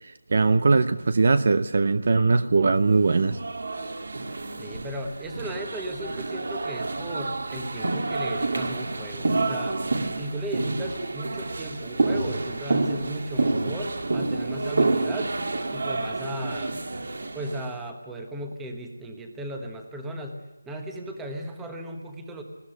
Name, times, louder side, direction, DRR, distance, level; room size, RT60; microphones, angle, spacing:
voice 1, 0.0-3.4, right 3 dB, 40° right, 13 dB, 0.6 m, -21 dB
sound 1, 3.0-17.7, right 2 dB, 55° right, 2.2 m, -29 dB
voice 2, 4.6-9.8 10.2-15.3 15.7-16.8 17.3-22.4, right 1 dB, 5° right, 4 dB, 1.1 m, -36 dB
19.5 x 15.5 x 9.9 m, 1.1 s
figure-of-eight pair, 175°, 0 cm